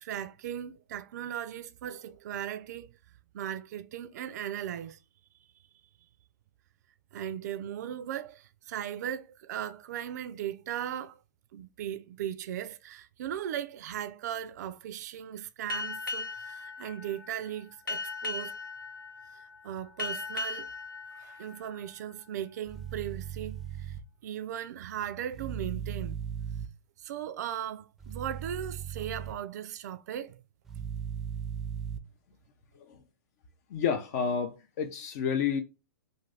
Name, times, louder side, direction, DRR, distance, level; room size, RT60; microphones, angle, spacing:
voice 1, 0.0-3.0 3.3-5.0 7.1-11.2 11.5-18.6 19.3-20.7 21.1-24.0 24.2-26.2 27.0-30.4 30.7-30.8, right 10 dB, 60° right, 0.4 m, -38 dB
Boat Water vehicle, 15.7-22.8, left 3 dB, 85° left, 0.8 m, -39 dB
sound 1, 22.6-24.0 25.3-26.7 28.0-29.3 30.7-32.0, right 8 dB, 5° right, 0.5 m, -37 dB
voice 2, 33.7-35.6, left 7 dB, 50° left, 0.5 m, -30 dB
2.6 x 2.5 x 3.3 m
hypercardioid pair, 115°, 11 cm